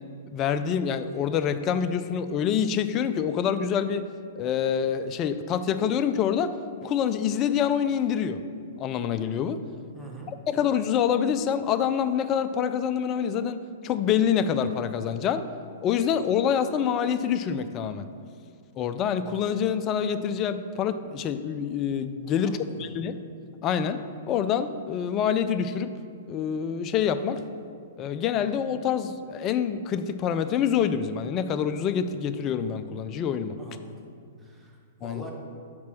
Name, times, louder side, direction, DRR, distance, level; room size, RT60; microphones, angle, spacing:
voice 1, 0.3-4.1 4.3-6.5 6.8-8.4 8.8-9.6 10.3-15.4 15.8-18.1 18.8-23.2 23.6-24.0 24.3-25.9 26.3-27.4 28.0-33.5 35.0-35.2, left 8 dB, 30° left, 11 dB, 0.4 m, -26 dB
voice 2, 9.9-10.3 22.4-22.9 33.6-34.1 34.4-35.3, right 2 dB, 5° right, -2 dB, 1.2 m, -43 dB
6.0 x 4.2 x 6.0 m, 2.3 s
figure-of-eight pair, 110°, 0 cm